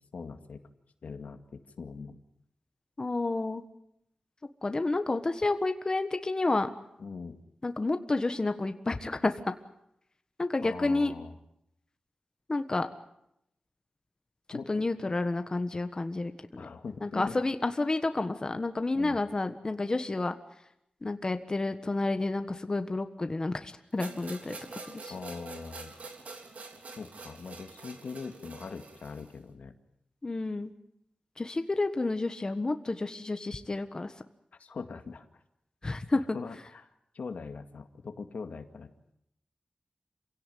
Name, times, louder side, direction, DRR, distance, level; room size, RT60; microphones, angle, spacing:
voice 1, 0.1-0.6 1.0-2.2 7.0-7.4 10.6-11.4 14.5-14.8 16.6-17.4 18.9-19.2 25.1-25.9 27.0-29.7 34.6-35.3 36.1-36.9 37.1-38.9, left 5 dB, 85° left, 6 dB, 2.1 m, -41 dB
voice 2, 3.0-3.6 4.6-6.7 7.6-9.3 10.4-11.1 12.5-12.9 14.7-16.7 17.0-20.4 21.0-24.6 24.9-25.1 30.2-30.7 31.4-34.1 35.8-36.2, left 2 dB, 30° left, 8 dB, 1.4 m, -30 dB
sound 1, 24.0-29.3, right 3 dB, 75° right, 3.6 m, -46 dB
28.0 x 17.0 x 9.3 m, 0.79 s
wide cardioid pair, 110°, 2 cm